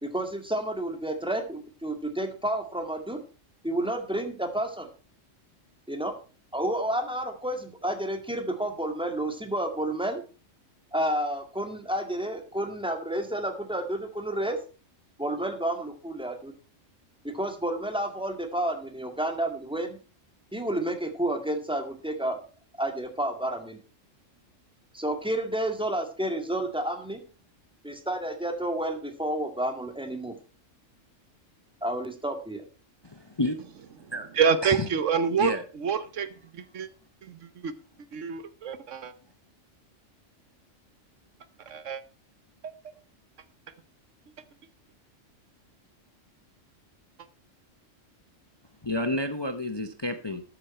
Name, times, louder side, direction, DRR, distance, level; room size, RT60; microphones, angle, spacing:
voice 1, 0.0-3.2 3.6-4.9 5.9-6.1 6.5-10.2 10.9-14.6 15.2-16.5 17.2-20.0 20.5-22.4 22.8-23.8 24.9-27.2 27.8-30.3 31.8-32.6, right 1 dB, 5° right, 5 dB, 2.0 m, -30 dB
voice 2, 33.0-33.6 34.1-34.3 34.6-34.8 35.4-35.6 48.8-50.4, left 1 dB, 25° left, 8 dB, 0.8 m, -30 dB
voice 3, 34.0-36.9 37.2-37.7 38.1-39.1 41.6-42.0 42.6-42.7, right 6 dB, 75° right, 13 dB, 1.2 m, -28 dB
13.5 x 8.6 x 4.3 m, 0.35 s
omnidirectional pair, 1.3 m